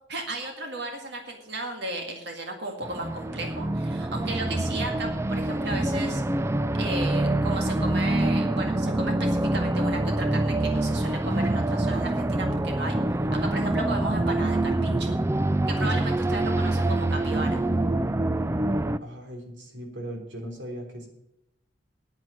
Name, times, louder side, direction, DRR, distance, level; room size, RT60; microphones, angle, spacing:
voice 1, 0.1-6.2 6.8-13.0 13.3-15.1 15.7-17.6, right 2 dB, 65° right, 3 dB, 1.9 m, -35 dB
sound 1, 2.8-19.0, right 1 dB, 15° right, 0.4 m, -25 dB
voice 2, 19.0-21.1, equal, 90° right, 2 dB, 3.4 m, -38 dB
9.4 x 9.2 x 7.4 m, 0.84 s
head